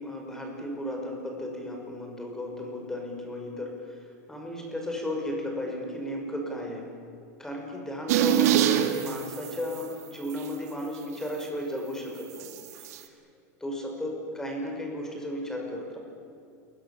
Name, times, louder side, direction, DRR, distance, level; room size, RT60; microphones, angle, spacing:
voice 1, 0.0-6.9 7.4-13.1 13.6-16.0, left 1 dB, 5° left, 1 dB, 5.6 m, -35 dB
sound 1, 8.1-9.8 10.3-10.5 12.4-13.0, right 10 dB, 75° right, 2.3 m, -24 dB
28.0 x 22.5 x 7.4 m, 2.6 s
supercardioid pair, 150°, 9 cm